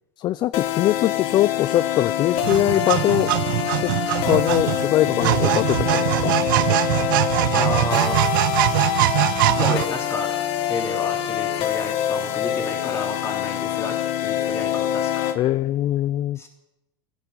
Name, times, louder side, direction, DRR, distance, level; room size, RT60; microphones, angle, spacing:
voice 1, 0.2-3.3 3.8-3.9 4.2-6.3 15.4-16.4, left 14 dB, 45° left, 18 dB, 0.4 m, -22 dB
sound 1, 0.5-15.4, left 11 dB, 60° left, 1.4 m, -25 dB
sound 2, 2.4-9.8, right 17 dB, 80° right, 0.5 m, -22 dB
voice 2, 7.5-8.3 9.6-10.4 10.7-15.4 16.4-16.5, left 3 dB, 25° left, 2 dB, 3.7 m, -31 dB
14.0 x 10.5 x 8.7 m, 0.97 s
supercardioid pair, 105°, 11 cm